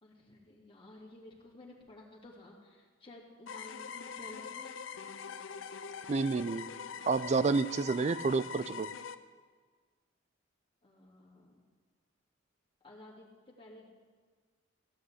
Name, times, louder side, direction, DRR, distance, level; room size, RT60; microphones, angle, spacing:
voice 1, 0.0-4.7 10.8-11.6 12.8-13.9, left 1 dB, 25° left, -3 dB, 2.8 m, -53 dB
sound 1, 3.5-9.1, left 6 dB, 85° left, 0.6 m, -43 dB
voice 2, 6.1-6.7 7.1-8.9, right 4 dB, 35° right, 15 dB, 0.4 m, -29 dB
15.5 x 6.4 x 9.8 m, 1.5 s
head